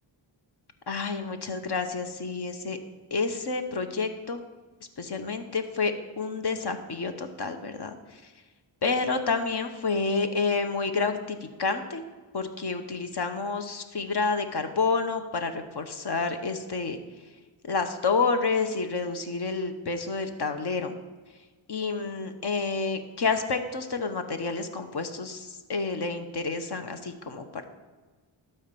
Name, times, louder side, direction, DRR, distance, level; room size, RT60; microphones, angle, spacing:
voice 1, 0.9-2.8 3.1-4.4 5.0-8.2 8.8-12.0 12.3-17.0 17.7-21.0 21.7-27.4, left 4 dB, 50° left, 8 dB, 1.1 m, -29 dB
12.0 x 4.5 x 6.9 m, 1.3 s
cardioid pair, 70°, 50 cm